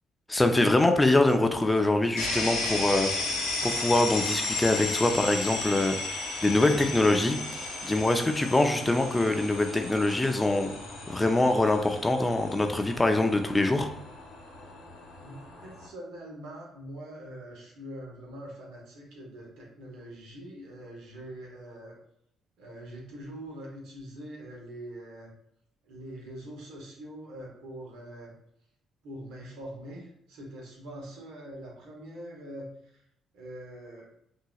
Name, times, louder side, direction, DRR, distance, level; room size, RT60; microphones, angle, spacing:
voice 1, 0.3-3.3 3.6-10.7 11.1-13.9, left 2 dB, 20° left, 5 dB, 0.6 m, -24 dB
sound 1, 2.2-15.9, left 2 dB, 80° left, 1.2 m, -34 dB
voice 2, 15.2-22.0 22.6-25.3 25.8-28.3 29.0-33.0 33.3-34.1, right 1 dB, 70° right, -2 dB, 1.4 m, -43 dB
5.5 x 2.8 x 2.4 m, 0.73 s
hypercardioid pair, 45°, 0 cm